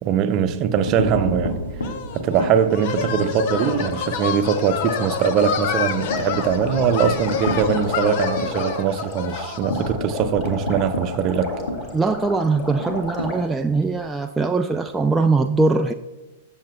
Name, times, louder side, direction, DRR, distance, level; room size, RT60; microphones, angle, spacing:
voice 1, 0.0-1.6 2.1-11.5, right 7 dB, 40° right, 0.7 m, -21 dB
sound 1, 0.6-3.8 4.2-4.4 4.7-4.8 5.1-14.0, left 1 dB, 80° left, 1.7 m, -31 dB
sound 2, 1.8-9.9, left 7 dB, 50° left, 0.8 m, -28 dB
sound 3, 3.5-13.4, left 1 dB, 30° left, 2.1 m, -34 dB
voice 2, 11.9-15.9, right 3 dB, 10° right, 0.4 m, -21 dB
18.5 x 7.2 x 2.2 m
figure-of-eight pair, 100°, 0 cm